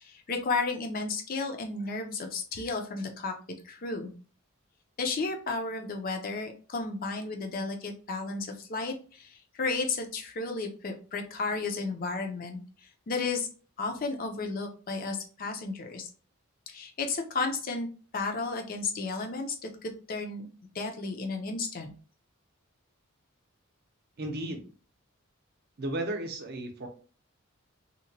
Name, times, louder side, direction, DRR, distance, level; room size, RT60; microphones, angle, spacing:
voice 1, 0.0-3.3 3.6-4.1 5.0-12.6 13.1-13.5 13.8-16.1 16.7-17.9 18.1-20.5 20.7-21.9, left 3 dB, 40° left, 4 dB, 0.5 m, -33 dB
voice 2, 24.2-24.7 25.8-26.9, right 1 dB, 50° right, 4 dB, 0.6 m, -34 dB
2.8 x 2.1 x 2.6 m, 0.38 s
head